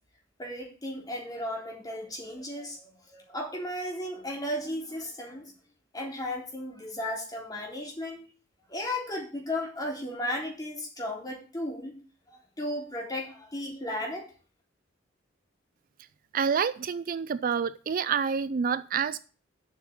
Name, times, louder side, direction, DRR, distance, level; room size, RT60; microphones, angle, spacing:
voice 1, 0.4-5.5 5.9-8.2 8.7-11.9 12.3-14.3, left 1 dB, 20° left, 3.7 m, -35 dB
voice 2, 16.3-19.2, right 6 dB, 45° right, 0.4 m, -28 dB
8.4 x 5.8 x 7.2 m
head